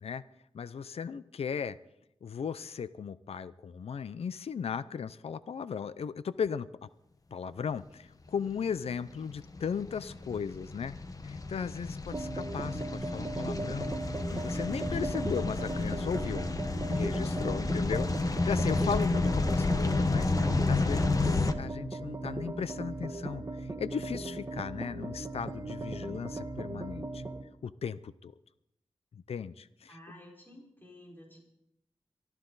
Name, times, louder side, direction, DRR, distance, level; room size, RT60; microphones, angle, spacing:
voice 1, 0.5-1.8 2.2-6.9 7.3-10.9 11.2-16.5 16.9-27.2 27.6-28.3 29.1-30.0, left 6 dB, 75° left, 15 dB, 0.5 m, -37 dB
sound 1, 8.7-21.5, left 3 dB, 35° left, 1.0 m, -31 dB
sound 2, 12.1-27.4, right 2 dB, 30° right, 1.3 m, -38 dB
voice 2, 29.9-31.4, left 1 dB, 20° left, -2 dB, 4.5 m, -52 dB
23.5 x 13.5 x 4.0 m, 0.82 s
wide cardioid pair, 100°, 10 cm